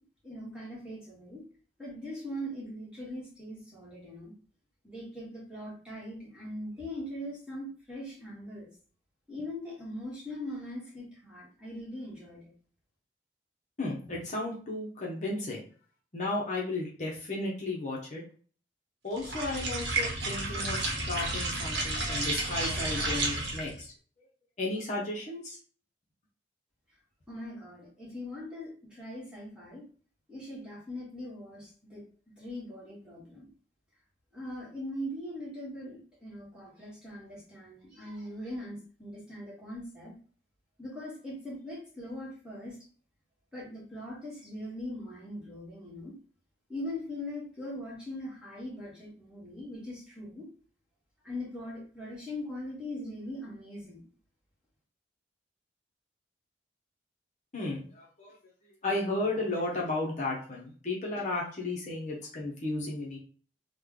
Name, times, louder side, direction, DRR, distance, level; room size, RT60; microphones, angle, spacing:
voice 1, 0.2-1.4 1.8-4.4 4.8-8.7 9.3-12.5 27.3-29.9 30.3-32.0 32.4-33.5 34.3-40.1 40.8-42.8 43.5-46.2 46.7-50.5 51.2-54.0, left 1 dB, 5° right, -6 dB, 1.3 m, -41 dB
voice 2, 13.8-15.6 16.1-18.2 19.0-23.9 24.6-25.6 57.5-58.3 58.8-63.2, left 2 dB, 40° left, -4 dB, 0.8 m, -34 dB
sound 1, 19.2-23.8, right 2 dB, 75° right, 0.9 m, -31 dB
3.2 x 2.2 x 3.6 m, 0.43 s
head